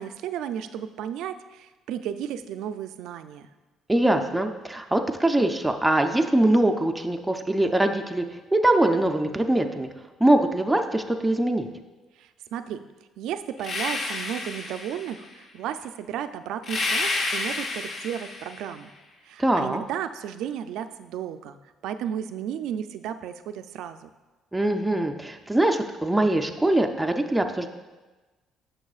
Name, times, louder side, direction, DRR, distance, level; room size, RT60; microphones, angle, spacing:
voice 1, 0.0-3.5 12.2-12.8 13.2-18.9 19.2-21.6 21.8-24.1, right 9 dB, 80° right, 10 dB, 0.4 m, -34 dB
voice 2, 3.9-9.9 10.2-11.7 19.4-19.8 24.5-27.7, right 1 dB, 5° right, 4 dB, 0.5 m, -22 dB
sound 1, 13.6-15.3 16.6-18.7, left 3 dB, 45° left, 0.9 m, -30 dB
11.0 x 6.1 x 2.4 m, 1.2 s
cardioid pair, 110°, 0 cm